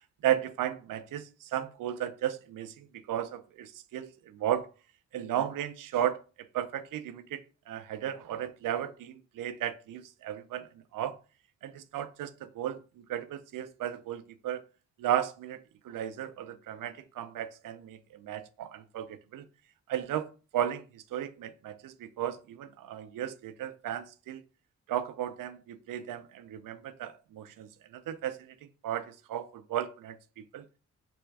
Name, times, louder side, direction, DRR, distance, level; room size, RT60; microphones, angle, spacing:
voice 1, 0.2-4.7 5.1-11.2 11.6-12.8 13.1-14.6 15.0-19.4 19.9-24.4 24.9-28.6 28.8-30.2 30.5-30.6, right 11 dB, 75° right, 0.6 m, -35 dB
3.4 x 3.1 x 4.7 m
supercardioid pair, 55°, 33 cm